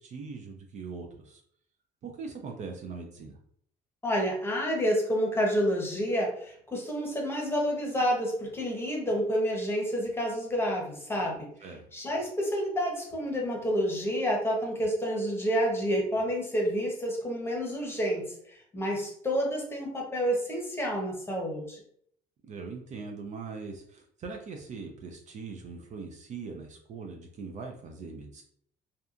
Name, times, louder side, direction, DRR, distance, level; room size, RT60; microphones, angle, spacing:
voice 1, 0.0-1.4 2.0-3.4 11.6-11.8 22.5-28.4, right 4 dB, 45° right, 3 dB, 0.4 m, -41 dB
voice 2, 4.0-11.5 11.9-18.3 18.7-21.8, equal, 15° left, -1 dB, 0.8 m, -29 dB
2.7 x 2.3 x 2.4 m, 0.65 s
cardioid pair, 110°, 17 cm